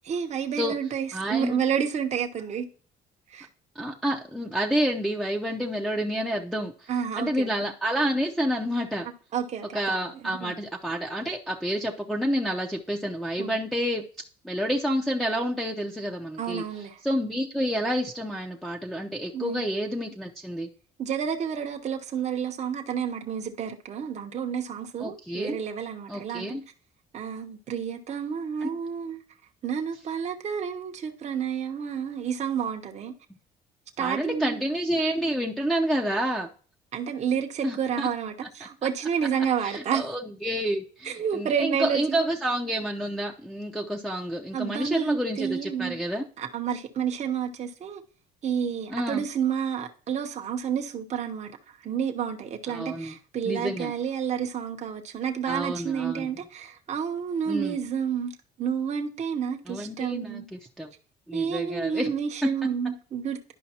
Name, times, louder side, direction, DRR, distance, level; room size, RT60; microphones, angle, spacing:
voice 1, 0.0-2.7 3.3-3.5 6.9-7.7 9.3-10.5 13.4-13.6 16.4-17.0 19.3-19.6 21.0-26.6 27.1-29.2 29.6-33.1 34.0-34.6 36.9-40.1 41.0-42.3 44.5-46.0 46.4-48.0 48.4-60.5 61.3-63.5, right 7 dB, 40° right, 0.8 m, -30 dB
voice 2, 1.1-1.6 3.8-6.9 7.2-9.1 9.7-14.0 14.4-16.6 17.0-20.7 25.0-25.6 26.1-26.6 28.6-28.7 34.0-36.5 37.6-38.1 39.6-46.2 48.9-49.3 52.7-53.1 53.4-53.9 55.5-56.3 57.5-57.8 59.7-60.9 61.3-62.1 62.4-62.5, equal, ahead, 0.7 m, -29 dB
11.0 x 5.1 x 2.9 m
cardioid pair, 110°, 17 cm